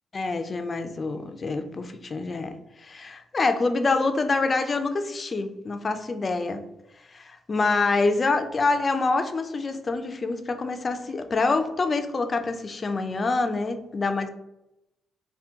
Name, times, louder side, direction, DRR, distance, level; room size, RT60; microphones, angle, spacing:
voice 1, 0.1-6.6 7.1-14.3, left 3 dB, 35° left, 8 dB, 0.3 m, -26 dB
3.5 x 2.1 x 2.7 m, 0.90 s
cardioid pair, 90°, 0 cm